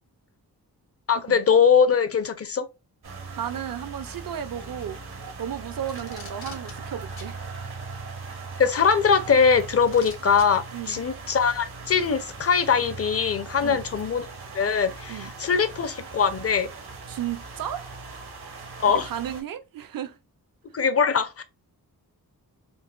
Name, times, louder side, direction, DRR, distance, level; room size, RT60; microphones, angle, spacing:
voice 1, 1.1-2.6 8.6-14.3 14.5-16.7 18.8-19.1 20.7-21.4, left 6 dB, 40° left, 0.5 m, -22 dB
sound 1, 3.0-19.4, right 4 dB, 80° right, 1.0 m, -39 dB
voice 2, 3.4-5.0 5.4-7.4 10.7-11.0 13.6-13.8 15.1-15.3 17.1-17.9 18.9-20.2, right 10 dB, 60° right, 0.5 m, -33 dB
Packing tape duct tape, 5.9-6.7 7.2-7.3 8.6-8.7 9.9-10.4 11.5-11.6, left 4 dB, 70° left, 1.1 m, -43 dB
3.9 x 2.0 x 2.3 m
cardioid pair, 55°, 38 cm